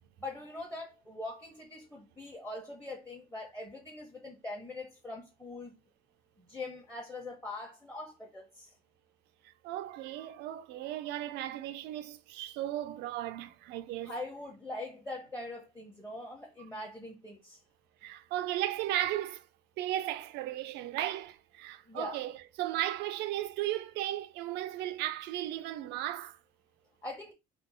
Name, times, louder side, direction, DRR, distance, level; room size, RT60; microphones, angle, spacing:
voice 1, 0.2-5.7 6.4-8.7 14.0-17.6 21.9-22.2 27.0-27.3, left 2 dB, 10° left, 0.8 m, -42 dB
voice 2, 9.6-14.1 18.0-19.4 19.8-26.4, right 13 dB, 85° right, 0.4 m, -35 dB
2.7 x 2.0 x 3.9 m
cardioid pair, 110°, 17 cm